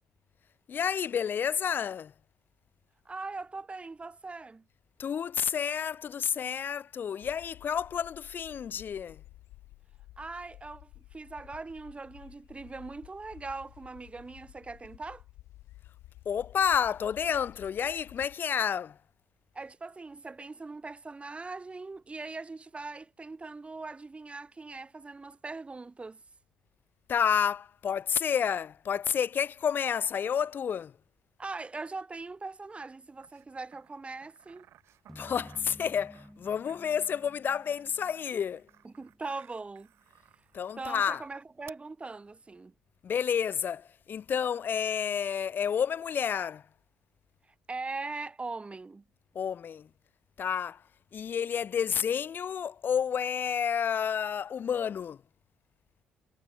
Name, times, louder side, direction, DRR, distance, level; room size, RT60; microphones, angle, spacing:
voice 1, 0.7-2.1 5.0-9.2 16.3-18.9 27.1-30.9 35.2-38.6 40.5-41.2 43.0-46.6 49.4-49.9 50.4-50.8 51.1-55.2, left 8 dB, 45° left, 0.5 m, -30 dB
voice 2, 3.0-4.6 10.2-15.2 19.5-26.2 31.4-34.6 38.8-39.9 40.8-42.7 47.7-49.0, right 3 dB, 25° right, 3.0 m, -41 dB
sound 1, 7.2-18.4, left 16 dB, 70° left, 2.9 m, -53 dB
sound 2, 33.2-40.9 41.7-41.8, right 12 dB, 65° right, 3.0 m, -59 dB
sound 3, 35.1-39.5, equal, 5° left, 8.0 m, -53 dB
hypercardioid pair, 55°, 5 cm